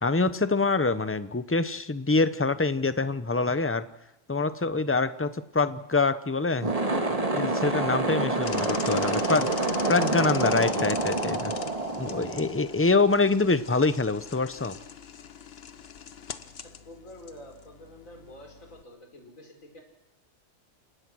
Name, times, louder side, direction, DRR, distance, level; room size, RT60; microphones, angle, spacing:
voice 1, 0.0-3.9 4.3-6.7 7.3-9.5 9.9-11.5 12.0-14.8, left 3 dB, 15° left, 13 dB, 0.6 m, -25 dB
sound 1, 6.5-13.0, right 2 dB, 25° right, 1.9 m, -27 dB
sound 2, 8.4-18.8, left 7 dB, 50° left, 1.1 m, -42 dB
voice 2, 16.6-19.8, left 1 dB, 70° left, 2 dB, 5.1 m, -48 dB
29.5 x 18.0 x 6.3 m, 0.92 s
omnidirectional pair, 1.4 m